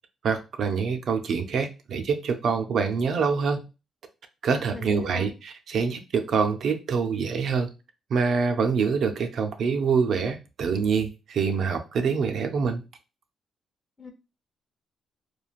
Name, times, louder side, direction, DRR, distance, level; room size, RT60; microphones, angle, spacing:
voice 1, 0.2-3.6 4.4-7.7 8.1-12.8, right 5 dB, 65° right, 0.4 m, -25 dB
voice 2, 4.5-5.3 14.0-14.1, left 3 dB, 20° left, 0.7 m, -40 dB
3.1 x 2.2 x 2.4 m
cardioid pair, 95°, 0 cm